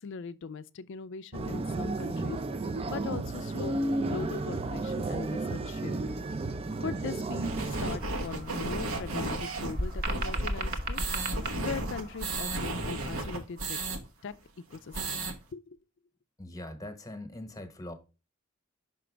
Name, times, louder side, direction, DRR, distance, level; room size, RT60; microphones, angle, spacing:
voice 1, 0.0-2.4 2.9-3.8 4.1-6.1 6.8-11.0 11.6-13.8 14.2-14.3 14.7-15.8, left 5 dB, 60° left, 0.4 m, -40 dB
sound 1, 1.3-8.0, right 2 dB, 30° right, 0.4 m, -32 dB
sound 2, 7.4-14.0 14.3-14.4 14.7-15.3, right 2 dB, 90° right, 1.1 m, -34 dB
sound 3, 7.6-13.3, right 1 dB, 45° right, 1.0 m, -37 dB
voice 2, 16.4-17.9, left 1 dB, 15° left, 1.0 m, -41 dB
5.9 x 5.0 x 3.3 m
head